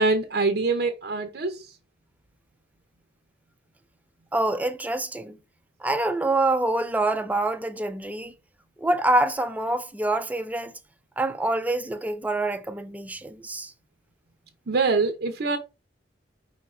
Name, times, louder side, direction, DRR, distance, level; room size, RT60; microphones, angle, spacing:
voice 1, 0.0-1.7 14.7-15.6, right 3 dB, 65° right, 0.6 m, -24 dB
voice 2, 4.3-5.4 5.8-8.3 8.8-10.7 11.2-13.7, right 2 dB, 10° right, 0.4 m, -26 dB
4.9 x 2.4 x 4.0 m
head